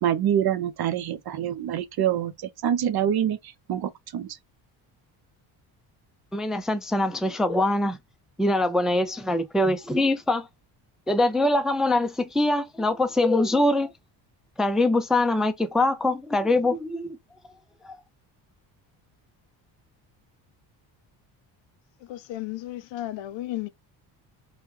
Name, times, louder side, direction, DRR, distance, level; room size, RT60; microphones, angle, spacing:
voice 1, 0.0-2.3 2.6-3.4 3.7-4.3, right 10 dB, 50° right, 0.7 m, -25 dB
voice 2, 6.3-8.0 8.4-10.5 11.1-13.9 14.6-17.2 17.8-18.0, left 2 dB, ahead, 0.4 m, -23 dB
voice 3, 22.0-23.7, left 15 dB, 65° left, 0.6 m, -34 dB
2.9 x 2.3 x 3.4 m
supercardioid pair, 70°, 50 cm